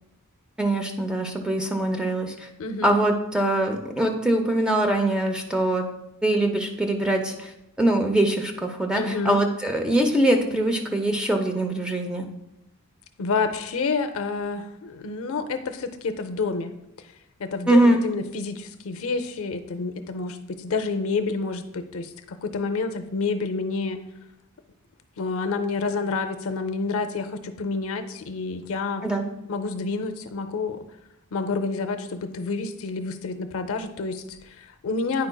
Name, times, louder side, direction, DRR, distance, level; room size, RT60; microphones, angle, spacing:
voice 1, 0.6-2.5 2.8-5.9 6.2-7.5 7.8-12.3 17.7-18.0 29.0-29.2, right 1 dB, 5° right, 3 dB, 0.5 m, -23 dB
voice 2, 2.6-2.9 8.9-9.4 13.2-17.1 17.4-24.0 25.2-29.1 29.5-30.8 31.3-35.3, left 4 dB, 65° left, 8 dB, 0.5 m, -29 dB
9.5 x 5.0 x 2.2 m, 0.86 s
head